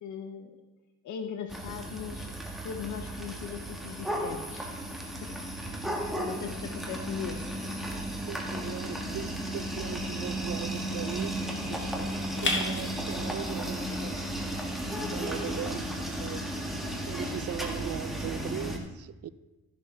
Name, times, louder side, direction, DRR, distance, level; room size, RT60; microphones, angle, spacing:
voice 1, 0.0-0.5 1.0-2.3 2.6-4.7 5.2-5.3 5.9-7.5, left 8 dB, 75° left, 7 dB, 1.0 m, -39 dB
sound 1, 1.5-18.8, right 1 dB, ahead, 1.8 m, -34 dB
sound 2, 6.5-14.2, left 3 dB, 40° left, 1.9 m, -40 dB
voice 2, 8.3-14.2 15.1-16.6 17.1-19.3, right 10 dB, 55° right, 16 dB, 0.6 m, -39 dB
14.5 x 6.4 x 4.5 m, 1.1 s
cardioid pair, 90°, 30 cm